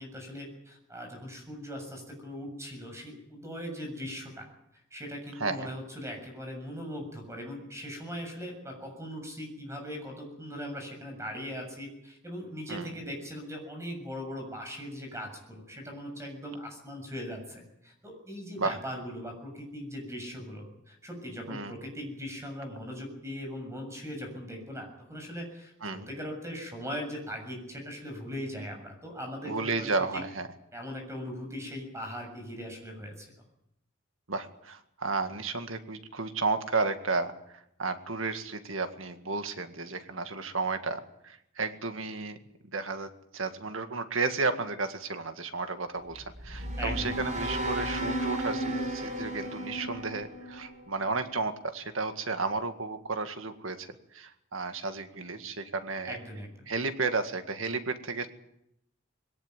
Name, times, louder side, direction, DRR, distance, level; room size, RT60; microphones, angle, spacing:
voice 1, 0.0-4.5 4.9-30.2 30.7-33.3 46.8-47.3 56.1-56.7, equal, 15° right, 3 dB, 7.0 m, -40 dB
voice 2, 5.4-5.7 12.7-12.9 18.6-18.8 21.5-21.8 25.8-26.1 29.5-30.5 34.3-42.4 42.7-56.2 56.7-58.3, right 3 dB, 90° right, 8 dB, 2.0 m, -33 dB
sound 1, 46.1-51.3, right 1 dB, 40° right, 4.3 m, -34 dB
21.5 x 18.0 x 9.4 m, 0.81 s
head